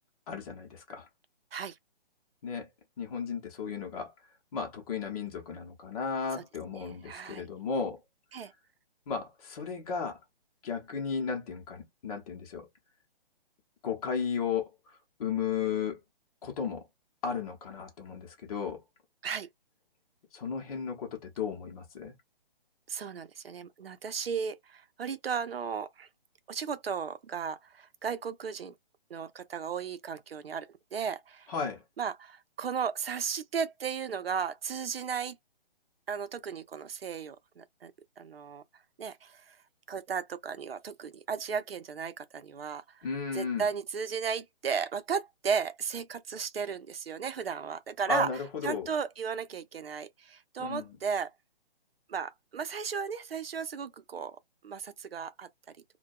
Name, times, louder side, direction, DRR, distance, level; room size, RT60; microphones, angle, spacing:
voice 1, 0.3-1.1 2.4-2.7 3.0-4.1 4.5-8.0 9.1-10.2 10.6-12.7 13.8-14.7 15.2-16.0 16.4-16.8 17.2-18.8 20.3-22.1 31.5-31.8 43.0-43.6 48.1-48.9 50.6-50.9, left 6 dB, 40° left, 0.8 m, -34 dB
voice 2, 6.7-7.5 8.3-8.5 19.2-19.5 22.9-26.1 26.5-28.7 29.1-31.5 32.0-35.4 36.1-37.9 38.2-38.6 39.0-39.6 39.9-43.1 43.3-48.3 48.6-51.3 52.1-54.4 54.6-55.5, right 6 dB, 85° right, 0.6 m, -35 dB
2.2 x 2.2 x 2.5 m
figure-of-eight pair, 145°, 29 cm